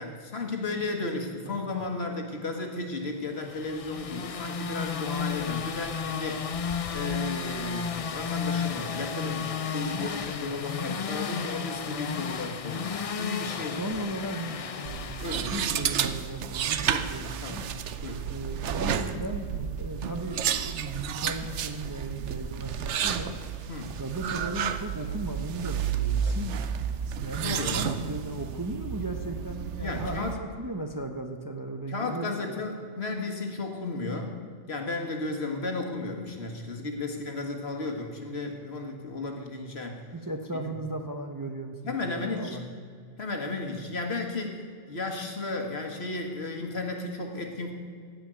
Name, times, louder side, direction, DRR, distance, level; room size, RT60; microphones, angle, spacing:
voice 1, 0.0-14.0 15.2-15.5 16.9-18.3 23.7-23.9 27.4-27.9 29.8-30.4 31.9-34.3 34.7-40.0 41.9-42.6 43.2-44.6 44.9-47.7, left 3 dB, 65° left, 3 dB, 1.9 m, -34 dB
sound 1, 3.4-16.3, left 6 dB, 45° left, 0.5 m, -33 dB
voice 2, 13.4-17.6 18.2-23.3 24.0-26.6 27.2-32.6 40.1-42.7, right 2 dB, 20° right, 4 dB, 0.7 m, -36 dB
sound 2, 14.8-30.3, right 8 dB, 85° right, 1.0 m, -31 dB
15.5 x 5.7 x 9.0 m, 2.1 s
omnidirectional pair, 1.2 m